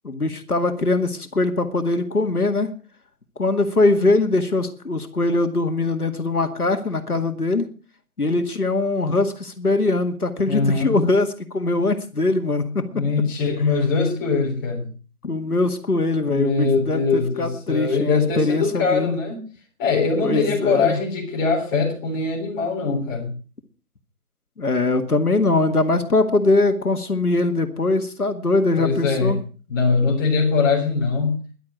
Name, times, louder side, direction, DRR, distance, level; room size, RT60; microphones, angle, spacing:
voice 1, 0.0-2.7 3.4-7.7 8.2-12.9 15.2-19.2 20.2-21.0 24.6-29.4, left 2 dB, 80° left, 7 dB, 2.1 m, -21 dB
voice 2, 10.4-11.0 12.9-14.9 16.3-19.4 19.8-23.3 28.8-29.3 29.7-31.4, left 4 dB, 15° left, -2 dB, 3.7 m, -22 dB
13.5 x 11.5 x 6.1 m, 0.38 s
figure-of-eight pair, 155°, 44 cm